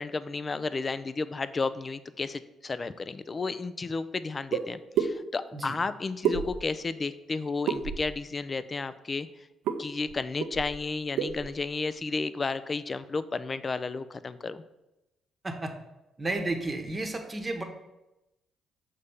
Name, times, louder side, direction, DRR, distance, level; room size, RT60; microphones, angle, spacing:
voice 1, 0.0-9.3 9.8-14.6, left 4 dB, 35° left, 13 dB, 0.4 m, -32 dB
sound 1, 4.5-4.6 5.0-5.1 6.2-6.8 7.7-8.2 9.7-9.8 10.1-10.2 10.4-10.8 11.2-11.5, right 7 dB, 90° right, 0.5 m, -28 dB
voice 2, 16.2-17.6, right 2 dB, 25° right, 4 dB, 1.0 m, -32 dB
6.7 x 3.3 x 5.4 m, 0.94 s
cardioid pair, 90°, 0 cm